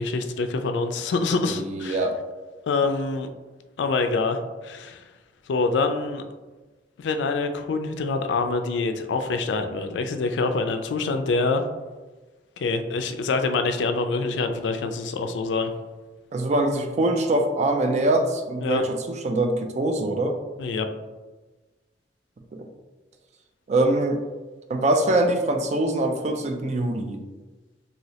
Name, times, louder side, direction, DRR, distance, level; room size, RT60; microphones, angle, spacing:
voice 1, 0.0-2.1 2.7-3.3 3.8-5.0 5.5-6.2 7.0-11.6 12.6-15.7 18.6-18.8 20.6-20.9, left 3 dB, 85° left, 7 dB, 0.3 m, -25 dB
voice 2, 1.5-2.1 16.3-20.4 22.5-22.7 23.7-24.2 24.7-27.2, right 2 dB, 40° right, 5 dB, 0.3 m, -23 dB
3.0 x 2.7 x 2.8 m, 1.2 s
head